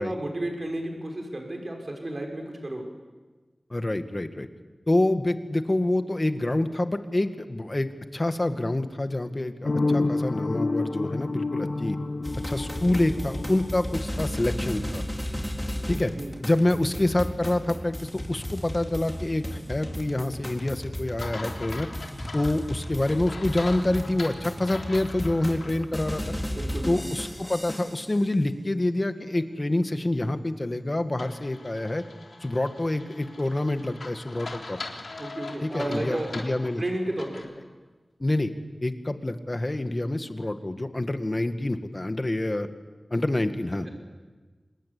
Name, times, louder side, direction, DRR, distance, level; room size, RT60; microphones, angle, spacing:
voice 1, 0.0-2.8 15.9-16.3 26.6-26.9 35.2-36.3 36.8-37.5, right 1 dB, 50° right, 1 dB, 6.1 m, -32 dB
voice 2, 3.7-4.5 4.9-12.0 12.5-15.0 15.9-16.1 16.4-21.9 22.3-26.2 26.9-32.0 32.4-34.8 35.6-36.8 38.2-38.5 38.8-42.7 43.1-43.9, left 1 dB, 35° left, 8 dB, 1.9 m, -27 dB
sound 1, 9.6-14.4, left 3 dB, 65° left, 0.7 m, -29 dB
sound 2, 12.2-28.1, equal, 10° left, 4.4 m, -35 dB
sound 3, 21.2-25.7 26.2-26.3 31.2-37.5, left 3 dB, 85° left, 3.5 m, -41 dB
26.0 x 20.5 x 8.5 m, 1.3 s
wide cardioid pair, 55°, 0 cm